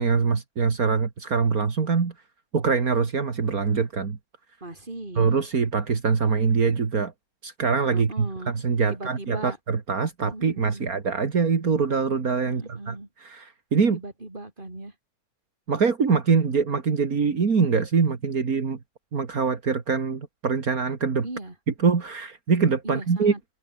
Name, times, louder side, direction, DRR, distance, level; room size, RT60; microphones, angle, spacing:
voice 1, 0.0-2.1 2.5-4.2 5.2-7.1 7.4-13.0 13.2-14.0 15.7-18.8 19.1-21.3 21.8-23.3, right 5 dB, 70° right, 2.6 m, -24 dB
voice 2, 4.6-5.3 7.9-8.5 8.9-9.6 10.3-10.9 12.4-13.1 13.9-15.0 21.2-21.6 22.8-23.4, right 2 dB, 30° right, 5.1 m, -38 dB
open air
omnidirectional pair, 1.6 m